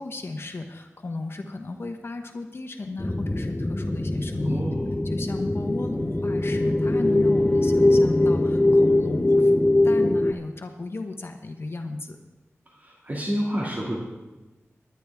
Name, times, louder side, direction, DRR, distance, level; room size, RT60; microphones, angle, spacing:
voice 1, 0.0-4.7 5.0-12.2, left 3 dB, 55° left, 5 dB, 1.0 m, -34 dB
sound 1, 3.0-10.3, left 2 dB, 20° left, 0.6 m, -21 dB
voice 2, 4.4-4.9 12.7-14.0, equal, 35° right, -3 dB, 2.3 m, -29 dB
21.5 x 10.5 x 3.5 m, 1.1 s
wide cardioid pair, 70°, 5 cm